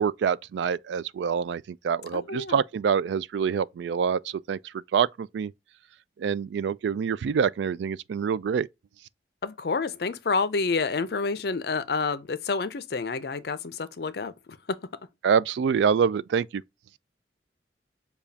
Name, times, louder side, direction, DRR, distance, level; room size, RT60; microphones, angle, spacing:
voice 1, 0.0-4.6 4.9-5.5 6.2-8.7 15.2-16.6, right 7 dB, 80° right, 0.3 m, -26 dB
voice 2, 2.1-2.6 9.4-14.3 14.7-14.8, left 4 dB, 60° left, 0.5 m, -28 dB
6.9 x 2.3 x 2.7 m
head